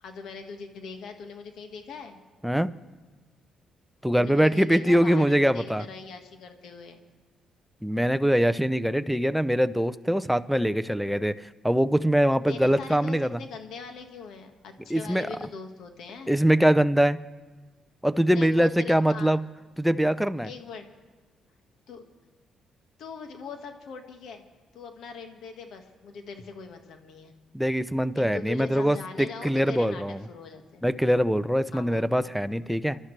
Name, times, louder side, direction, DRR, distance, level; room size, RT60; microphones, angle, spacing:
voice 1, 0.0-2.2 4.1-7.0 12.5-16.3 18.3-19.3 20.4-20.9 21.9-22.0 23.0-24.4 24.7-27.3 28.1-30.9 31.7-32.1, left 5 dB, 75° left, 5 dB, 1.7 m, -41 dB
voice 2, 4.0-5.8 7.8-13.4 14.9-15.3 16.3-17.2 18.0-19.4 19.8-20.5 27.5-30.2 30.8-33.0, equal, ahead, 12 dB, 0.6 m, -23 dB
28.5 x 12.0 x 3.3 m, 1.4 s
cardioid pair, 90°, 0 cm